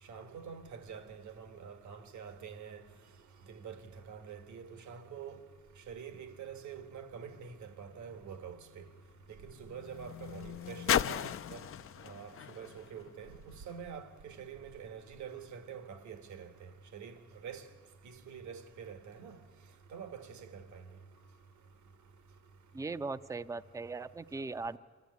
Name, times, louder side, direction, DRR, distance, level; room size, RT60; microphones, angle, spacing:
voice 1, 0.1-2.8 3.5-3.8 4.1-5.4 5.9-8.8 9.4-11.6 12.0-13.3 13.7-16.5 16.9-17.1 17.4-17.6 18.3-19.4 19.9-20.8, right 7 dB, 70° right, 1.5 m, -46 dB
sound 1, 7.4-13.9 14.7-14.8, left 9 dB, 45° left, 0.5 m, -38 dB
voice 2, 22.7-24.8, right 3 dB, 10° right, 0.5 m, -39 dB
24.5 x 14.5 x 9.4 m
cardioid pair, 90°, 30 cm